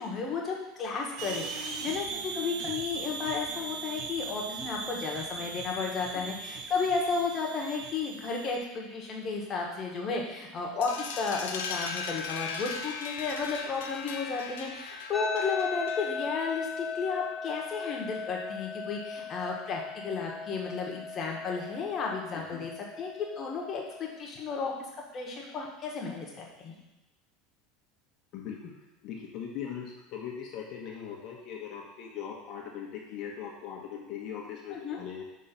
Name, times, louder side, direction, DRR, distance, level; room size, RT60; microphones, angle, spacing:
voice 1, 0.0-24.7 25.1-26.8 34.7-35.0, left 4 dB, 35° left, -1 dB, 1.5 m, -33 dB
sound 1, 1.2-8.6, right 5 dB, 60° right, 0.8 m, -39 dB
sound 2, 10.8-16.3, left 5 dB, 85° left, 0.7 m, -38 dB
sound 3, 15.1-24.2, left 5 dB, 10° left, 0.5 m, -38 dB
voice 2, 22.3-22.7 28.3-28.7 29.0-35.2, left 8 dB, 50° left, -1 dB, 1.1 m, -40 dB
5.6 x 3.8 x 5.3 m, 0.99 s
supercardioid pair, 120°, 0 cm